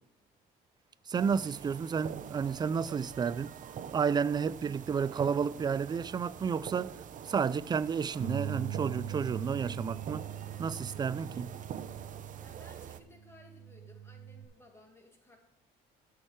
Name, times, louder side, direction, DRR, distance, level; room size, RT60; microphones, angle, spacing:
voice 1, 1.1-3.5 3.9-7.0 7.3-10.3 10.6-11.5, right 6 dB, 25° right, 0.4 m, -31 dB
sound 1, 1.1-13.0, right 8 dB, 50° right, 0.7 m, -45 dB
Bass guitar, 8.2-14.5, right 9 dB, 70° right, 1.3 m, -41 dB
voice 2, 12.3-15.4, left 1 dB, 15° left, 2.1 m, -58 dB
13.5 x 6.5 x 3.3 m
cardioid pair, 110°, 17 cm